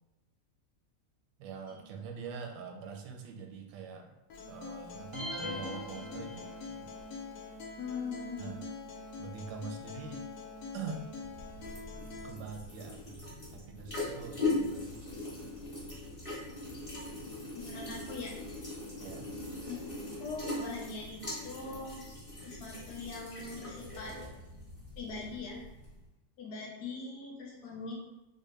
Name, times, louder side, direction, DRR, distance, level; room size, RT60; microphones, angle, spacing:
voice 1, 1.4-4.2 4.5-6.9 8.4-8.6 9.2-10.3 10.7-11.1 12.2-13.2 13.5-15.0 19.0-19.3, right 5 dB, 85° right, 3 dB, 1.3 m, -44 dB
Acoustic guitar, 4.3-12.3, left 3 dB, 90° left, 1.3 m, -45 dB
sound 1, 5.1-6.9, left 1 dB, 50° right, 0.6 m, -41 dB
voice 2, 7.8-8.6 17.5-18.3 19.6-19.8 20.2-22.1 22.4-24.1 25.0-25.6 26.4-27.9, left 4 dB, 70° left, -2 dB, 1.3 m, -41 dB
sound 2, 11.1-26.0, left 2 dB, 30° left, 0.6 m, -40 dB
3.9 x 2.0 x 3.2 m, 1.0 s
omnidirectional pair, 1.9 m